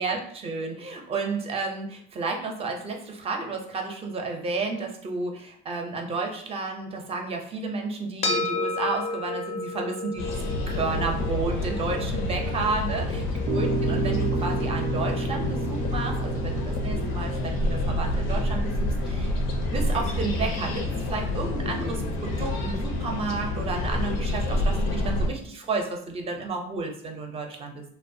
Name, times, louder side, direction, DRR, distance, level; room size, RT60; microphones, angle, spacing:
voice 1, 0.0-13.2 13.5-19.4 19.7-27.8, right 3 dB, 30° right, 2 dB, 0.4 m, -32 dB
sound 1, 8.2-16.8, left 2 dB, 35° left, 0.4 m, -34 dB
sound 2, 10.2-25.3, left 1 dB, 90° left, 0.5 m, -28 dB
sound 3, 13.5-19.9, right 3 dB, 85° right, 0.5 m, -32 dB
2.7 x 2.1 x 2.5 m, 0.64 s
cardioid pair, 130°, 21 cm